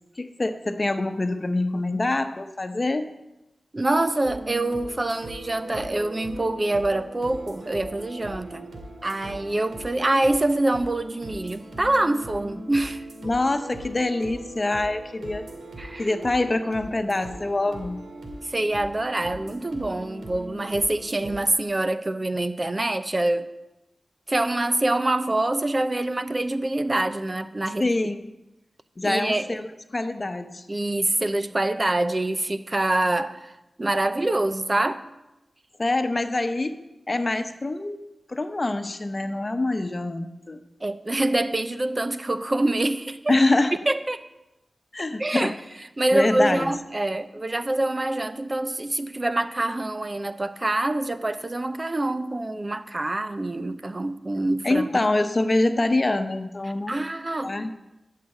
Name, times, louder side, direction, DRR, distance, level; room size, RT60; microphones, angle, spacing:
voice 1, 0.2-3.1 13.2-15.5 16.0-18.0 27.8-28.3 29.0-30.6 35.8-36.8 37.1-38.0 38.3-40.6 43.3-43.8 44.9-45.5 46.1-46.8 54.6-56.9 57.4-57.7, left 2 dB, 40° left, 1.0 m, -25 dB
voice 2, 3.7-8.7 9.0-13.0 15.8-16.1 18.5-23.5 24.3-27.9 29.0-29.6 30.7-33.5 33.8-35.0 40.8-43.4 43.9-44.2 45.2-45.5 46.0-54.9 56.9-57.5, right 2 dB, 35° right, 0.7 m, -25 dB
sound 1, 4.2-21.4, right 1 dB, 90° right, 2.2 m, -40 dB
12.5 x 6.7 x 8.0 m
cardioid pair, 60°, 0 cm